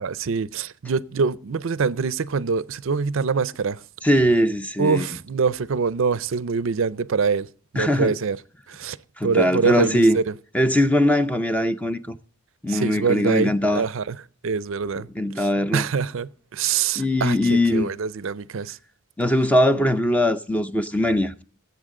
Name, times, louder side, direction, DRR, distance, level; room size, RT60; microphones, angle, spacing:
voice 1, 0.0-3.8 4.8-7.5 7.7-8.4 8.7-9.0 9.2-10.2 12.7-14.2 14.4-15.1 15.4-15.5 15.7-18.8, right 5 dB, 60° right, 0.5 m, -24 dB
voice 2, 4.0-5.1 7.8-8.2 9.2-10.2 10.5-12.2 12.6-13.8 15.1-15.9 17.0-17.9 19.2-21.4, left 1 dB, 5° left, 0.5 m, -21 dB
20.0 x 8.1 x 3.7 m
head